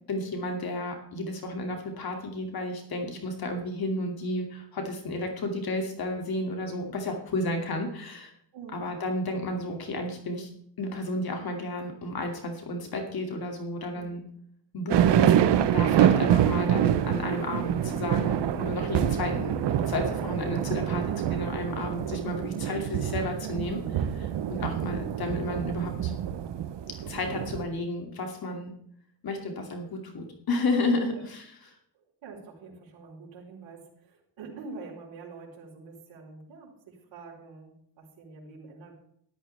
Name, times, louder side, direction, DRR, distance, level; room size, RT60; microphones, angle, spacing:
voice 1, 0.1-8.3 8.7-10.5 10.8-14.2 14.7-26.1 26.9-28.7 29.2-31.7, left 1 dB, 55° left, 3 dB, 2.6 m, -32 dB
sound 1, 14.9-27.6, right 10 dB, 70° right, 1.0 m, -26 dB
voice 2, 31.9-38.9, right 4 dB, 85° right, -5 dB, 4.4 m, -46 dB
13.5 x 12.5 x 3.4 m, 0.67 s
cardioid pair, 125°, 45 cm